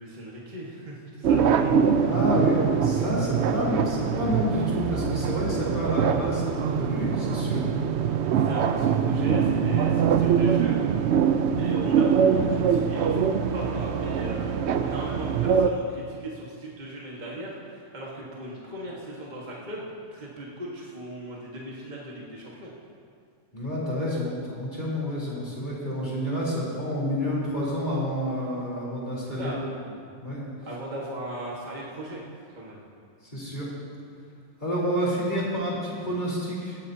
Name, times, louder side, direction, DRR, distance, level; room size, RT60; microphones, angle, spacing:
voice 1, 0.0-1.8 8.4-10.8 11.5-19.8 20.1-22.7 29.4-29.8 30.6-32.2 32.5-32.8, right 1 dB, 35° right, -4 dB, 1.7 m, -38 dB
sound 1, 1.2-15.7, right 7 dB, 65° right, 0.8 m, -23 dB
voice 2, 2.0-7.7 23.5-29.5 30.2-30.5 33.3-33.7 34.6-36.8, equal, 35° left, -6 dB, 3.9 m, -29 dB
18.0 x 13.5 x 2.8 m, 2.4 s
omnidirectional pair, 1.3 m